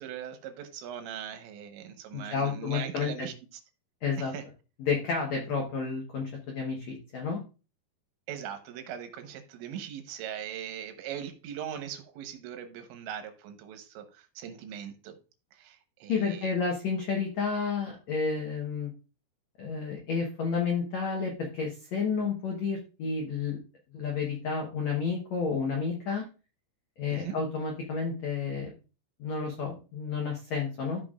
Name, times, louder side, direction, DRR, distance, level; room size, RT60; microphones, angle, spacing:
voice 1, 0.0-3.6 4.2-4.5 8.3-15.2 15.5-16.5 27.1-27.4, right 9 dB, 85° right, 3.4 m, -40 dB
voice 2, 2.1-3.3 4.0-4.3 4.8-7.4 16.1-18.9 19.6-23.6 23.9-26.2 27.0-28.7 29.2-31.0, left 5 dB, 90° left, 1.5 m, -31 dB
14.0 x 5.9 x 2.4 m
omnidirectional pair, 5.1 m